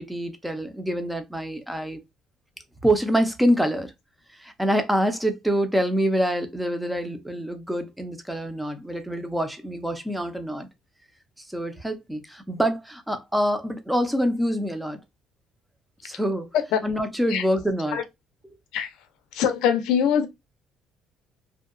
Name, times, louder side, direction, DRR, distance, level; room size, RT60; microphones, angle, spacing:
voice 1, 0.0-2.0 2.8-3.9 4.4-10.7 11.5-15.0 16.0-16.5 16.8-18.0, equal, 5° right, 0.4 m, -25 dB
voice 2, 19.3-20.3, left 8 dB, 80° left, 0.4 m, -22 dB
2.6 x 2.2 x 2.4 m
cardioid pair, 160°, 0 cm